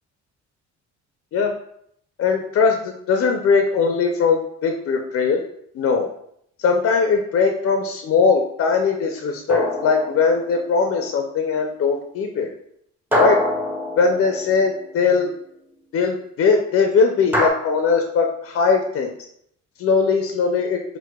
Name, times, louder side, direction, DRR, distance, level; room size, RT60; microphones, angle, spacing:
voice 1, 2.2-5.4 5.7-6.1 6.6-12.5 13.2-13.4 14.0-15.3 15.9-19.1 19.8-20.8, left 5 dB, 50° left, 3 dB, 0.4 m, -20 dB
sound 1, 9.5-10.7 13.1-14.8 17.3-17.5, left 1 dB, 5° right, 0.5 m, -24 dB
4.5 x 2.1 x 2.2 m, 0.72 s
cardioid pair, 90°, 30 cm